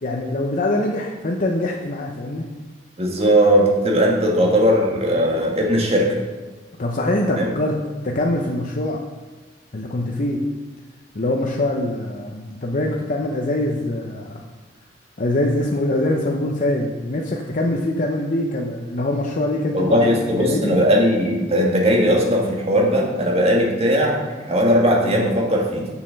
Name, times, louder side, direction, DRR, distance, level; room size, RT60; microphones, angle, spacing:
voice 1, 0.0-2.5 6.8-9.0 9.7-10.4 11.1-14.4 15.2-20.8, left 1 dB, 45° left, 0 dB, 0.8 m, -23 dB
voice 2, 3.0-6.1 7.4-7.5 19.7-25.9, equal, 35° right, -1 dB, 1.7 m, -18 dB
7.2 x 6.6 x 6.4 m, 1.3 s
head